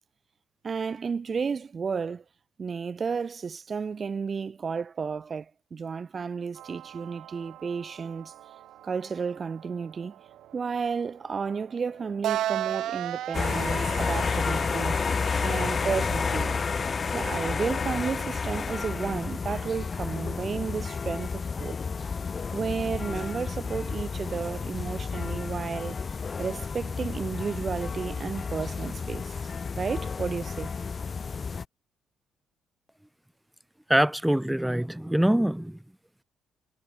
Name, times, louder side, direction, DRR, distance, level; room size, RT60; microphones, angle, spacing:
voice 1, 0.6-2.2 2.6-8.3 8.8-10.2 10.5-15.0 15.4-16.6 17.1-21.8 22.5-26.0 26.4-29.4 29.8-30.7, right 5 dB, 40° right, 1.3 m, -32 dB
sound 1, 6.6-16.9, right 13 dB, 80° right, 3.2 m, -37 dB
sound 2, 13.3-31.7, left 5 dB, 40° left, 0.6 m, -31 dB
voice 2, 33.9-35.8, right 1 dB, 5° right, 1.1 m, -24 dB
cardioid pair, 90°, 0 cm